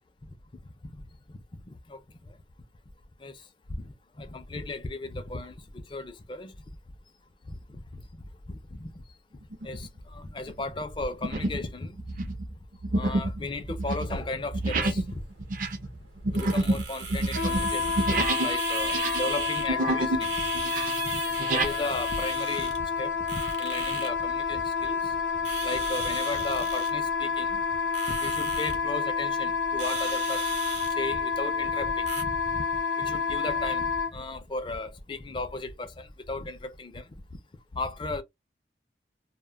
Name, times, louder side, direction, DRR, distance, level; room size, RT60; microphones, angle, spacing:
voice 1, 1.7-2.3 3.2-3.4 3.7-5.6 5.9-6.5 7.5-8.0 8.5-8.9 9.6-12.3 12.9-15.2 16.3-20.5 20.8-21.2 21.5-25.2 25.6-27.6 28.1-30.5 31.0-32.6 33.0-37.1 37.7-38.2, left 2 dB, 25° left, 0.4 m, -36 dB
sound 1, 9.5-9.9 10.4-10.6 11.2-11.7 12.0-18.5 18.8-20.3 20.5-21.7, right 2 dB, 45° right, 0.5 m, -29 dB
sound 2, 15.1-32.2, right 5 dB, 80° right, 0.8 m, -38 dB
Wind instrument woodwind instrument, 17.3-34.1, left 5 dB, 80° left, 0.6 m, -29 dB
2.1 x 2.1 x 3.3 m
head